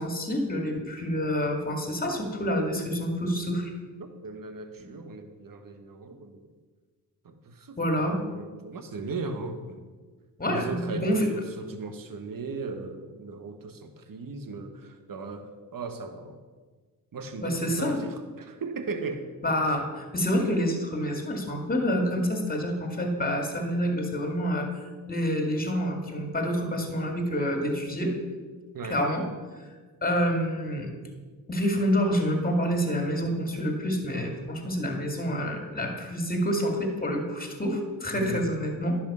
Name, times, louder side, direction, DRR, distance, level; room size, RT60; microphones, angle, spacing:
voice 1, 0.0-3.7 7.8-8.2 10.4-11.3 17.4-18.0 19.4-28.1 28.9-29.7 30.0-30.9 31.5-39.0, equal, 20° left, 3 dB, 2.2 m, -28 dB
voice 2, 4.0-6.4 7.2-9.8 10.5-16.4 17.1-19.3 28.7-29.1 38.1-38.4, right 3 dB, 50° right, 7 dB, 1.3 m, -37 dB
10.5 x 5.9 x 5.5 m, 1.4 s
supercardioid pair, 45°, 42 cm